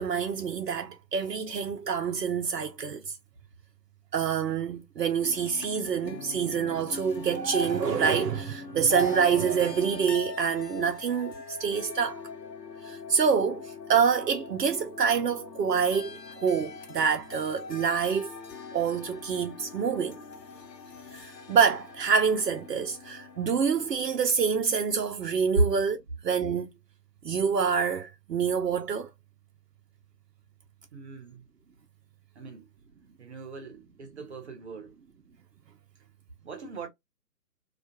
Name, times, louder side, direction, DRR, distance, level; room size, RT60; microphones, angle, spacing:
voice 1, 0.0-3.1 4.1-11.3 11.6-12.2 12.8-18.3 18.7-20.2 21.1-26.0 26.2-26.7 27.2-29.1, right 6 dB, 80° right, 0.7 m, -26 dB
sound 1, 5.2-24.1, left 5 dB, 85° left, 0.7 m, -43 dB
voice 2, 30.9-31.4 32.3-32.7 33.2-35.0 36.4-36.9, right 2 dB, 45° right, 0.8 m, -33 dB
2.4 x 2.2 x 2.7 m
figure-of-eight pair, 145°, 48 cm